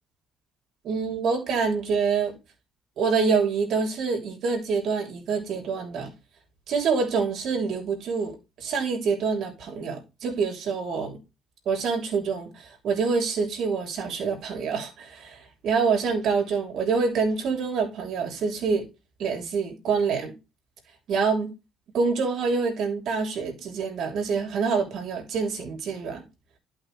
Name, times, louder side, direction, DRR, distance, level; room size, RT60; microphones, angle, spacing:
voice 1, 0.8-2.3 3.0-6.1 6.7-8.3 8.6-11.2 11.6-18.8 19.2-20.3 21.1-21.5 21.9-26.2, right 5 dB, 65° right, 3.3 m, -26 dB
12.0 x 5.8 x 3.3 m
hypercardioid pair, 55°, 0 cm